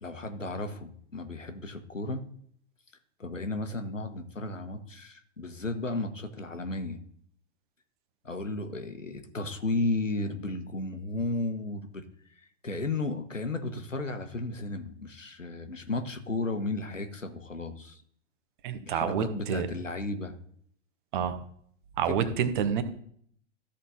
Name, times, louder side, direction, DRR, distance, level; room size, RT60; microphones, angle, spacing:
voice 1, 0.0-2.3 3.2-7.0 8.2-12.0 12.4-18.0 18.9-20.3 22.0-22.4, left 2 dB, 85° left, 7 dB, 1.4 m, -34 dB
voice 2, 18.6-19.7 21.1-21.4 22.0-22.8, right 8 dB, 40° right, 10 dB, 1.2 m, -28 dB
13.5 x 4.4 x 5.6 m, 0.64 s
figure-of-eight pair, 110°, 37 cm